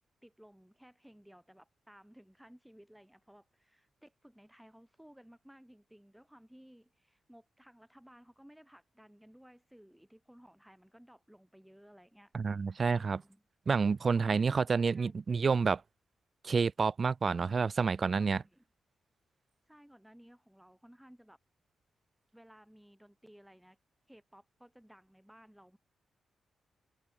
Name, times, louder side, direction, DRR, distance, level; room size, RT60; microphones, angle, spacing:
voice 1, 0.2-12.3 12.8-13.4 14.2-15.6 17.3-17.7 18.0-18.6 19.7-21.4 22.3-23.8 24.1-25.8, equal, 5° right, 3.6 m, -58 dB
voice 2, 12.3-13.2 13.7-15.8 16.4-18.4, right 5 dB, 40° right, 0.3 m, -29 dB
cardioid pair, 100°, 0 cm